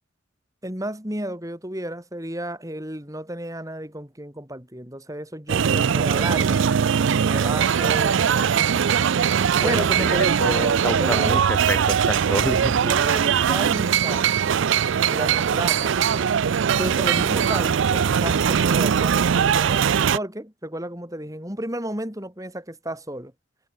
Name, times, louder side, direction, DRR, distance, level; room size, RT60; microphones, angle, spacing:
voice 1, 0.6-6.6 7.2-9.3 9.6-10.5 10.9-11.4 12.8-14.3 15.1-16.3 16.7-23.3, right 1 dB, 15° right, 4.4 m, -32 dB
sound 1, 5.5-20.2, right 7 dB, 70° right, 0.4 m, -21 dB
voice 2, 9.6-12.8, left 1 dB, 10° left, 0.6 m, -29 dB
head